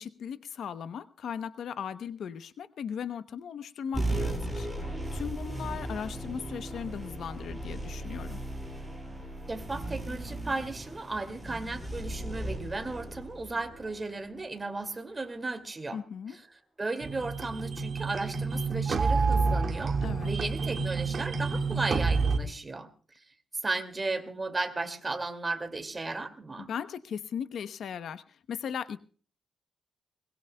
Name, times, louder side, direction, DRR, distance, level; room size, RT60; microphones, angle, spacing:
voice 1, 0.0-8.4 15.9-16.4 20.0-20.3 26.7-29.0, left 7 dB, 75° left, 12 dB, 0.9 m, -38 dB
sound 1, 3.9-14.8, right 1 dB, 5° right, 5.7 m, -37 dB
voice 2, 9.5-16.0 16.3-16.4 16.8-20.0 20.2-22.9 23.6-26.7, right 3 dB, 25° right, 8 dB, 2.3 m, -35 dB
sound 2, 17.0-22.4, right 4 dB, 50° right, 1.8 m, -28 dB
22.0 x 21.0 x 2.3 m, 0.42 s
cardioid pair, 105°, 0 cm